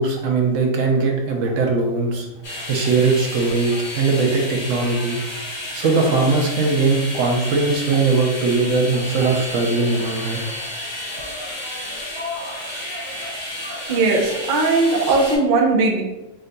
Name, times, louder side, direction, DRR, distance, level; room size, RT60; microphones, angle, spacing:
voice 1, 0.0-2.3 2.7-5.2 5.7-10.4, right 3 dB, 70° right, 1 dB, 1.0 m, -20 dB
sound 1, 2.4-15.4, left 1 dB, 65° left, 1.9 m, -31 dB
voice 2, 13.9-16.0, right 3 dB, 50° right, -1 dB, 0.8 m, -18 dB
4.7 x 3.9 x 2.2 m, 1.0 s
omnidirectional pair, 1.4 m